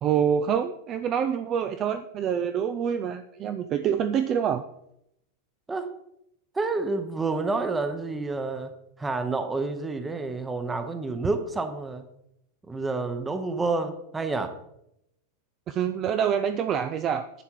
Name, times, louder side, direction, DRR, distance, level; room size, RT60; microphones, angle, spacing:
voice 1, 0.0-4.7 15.7-17.4, right 8 dB, 25° right, 9 dB, 0.4 m, -26 dB
voice 2, 6.5-8.7 9.0-12.1 12.7-14.5, right 3 dB, 10° right, 8 dB, 0.8 m, -29 dB
11.0 x 8.1 x 4.5 m, 0.78 s
supercardioid pair, 170°, 0 cm